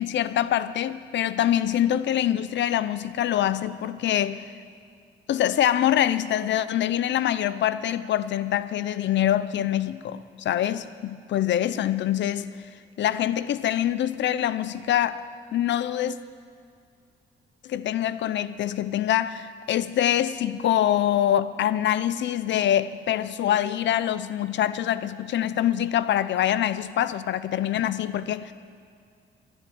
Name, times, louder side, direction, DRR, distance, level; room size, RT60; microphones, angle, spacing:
voice 1, 0.0-4.5 5.3-12.5 13.0-15.2 15.5-16.2 17.6-28.5, left 11 dB, 65° left, 0.6 m, -25 dB
11.5 x 10.5 x 9.4 m
cardioid pair, 90°, 20 cm